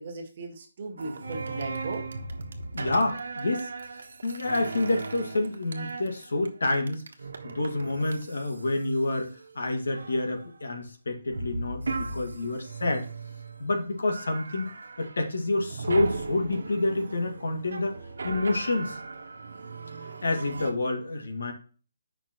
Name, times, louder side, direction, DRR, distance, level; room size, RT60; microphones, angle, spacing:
voice 1, 0.0-2.1 12.4-12.5 20.0-20.2, right 3 dB, 35° right, 1 dB, 1.6 m, -38 dB
sound 1, 1.0-9.5 9.9-10.6 11.3-13.7 14.1-15.2 15.5-20.7, right 3 dB, 85° right, 1.2 m, -37 dB
voice 2, 2.7-3.7 4.2-7.0 7.4-13.1 13.6-14.7 15.0-18.0 18.2-19.0 20.2-21.5, left 2 dB, 85° left, 3 dB, 2.0 m, -28 dB
8.4 x 5.6 x 3.0 m, 0.38 s
hypercardioid pair, 175°, 0 cm